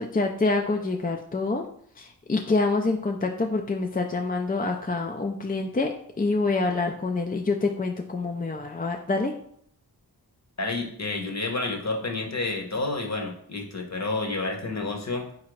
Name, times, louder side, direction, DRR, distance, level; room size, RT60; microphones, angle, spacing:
voice 1, 0.0-1.6 2.0-9.3, left 3 dB, 25° left, 2 dB, 0.4 m, -26 dB
voice 2, 10.6-15.3, left 3 dB, 40° left, 2 dB, 0.9 m, -29 dB
4.2 x 2.5 x 4.7 m, 0.64 s
wide cardioid pair, 45°, 40 cm